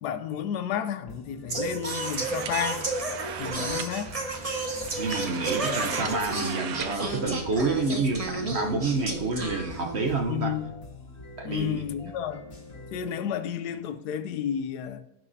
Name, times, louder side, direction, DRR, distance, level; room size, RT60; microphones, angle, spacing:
voice 1, 0.0-2.8 3.4-4.1 10.3-10.7 11.4-12.4 12.9-15.0, left 9 dB, 85° left, 1.2 m, -31 dB
sound 1, 1.1-6.4 7.1-13.1, left 2 dB, 45° left, 2.8 m, -47 dB
Singing, 1.5-10.2, right 2 dB, 25° right, 0.9 m, -32 dB
sound 2, 1.9-7.0, right 8 dB, 70° right, 1.1 m, -37 dB
voice 2, 5.0-10.5 11.4-11.9, right 3 dB, 50° right, 1.1 m, -28 dB
16.0 x 6.1 x 2.8 m
omnidirectional pair, 1.7 m